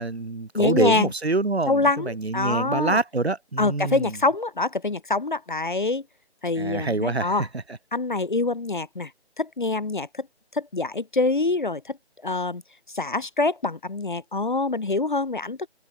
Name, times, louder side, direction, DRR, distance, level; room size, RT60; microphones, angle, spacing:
voice 1, 0.0-4.2 6.6-7.6, right 3 dB, 70° right, 2.1 m, -26 dB
voice 2, 0.5-1.1 1.7-3.0 3.6-6.0 6.4-7.5 7.9-9.1 9.4-10.3 10.5-12.0 12.2-12.6 12.9-15.7, left 3 dB, 45° left, 0.6 m, -25 dB
figure-of-eight pair, 160°, 34 cm